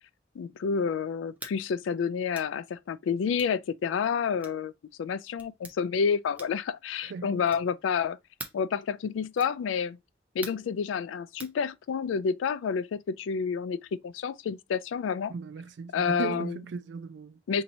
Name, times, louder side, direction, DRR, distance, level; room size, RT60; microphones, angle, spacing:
voice 1, 0.4-4.7 5.0-8.2 8.5-10.0 10.4-13.8 14.0-15.3 15.9-16.6 17.5-17.6, left 6 dB, 90° left, 0.3 m, -29 dB
sound 1, 1.4-1.6 2.3-2.5 3.3-3.6 4.4-4.6 5.4-5.8 6.3-6.7 7.4-7.7 8.4-8.7 9.3-9.6 10.4-10.7 11.4-11.6, right 2 dB, 10° right, 0.5 m, -44 dB
voice 2, 7.0-7.4 15.3-17.6, right 5 dB, 70° right, 0.3 m, -37 dB
4.2 x 2.7 x 2.6 m
head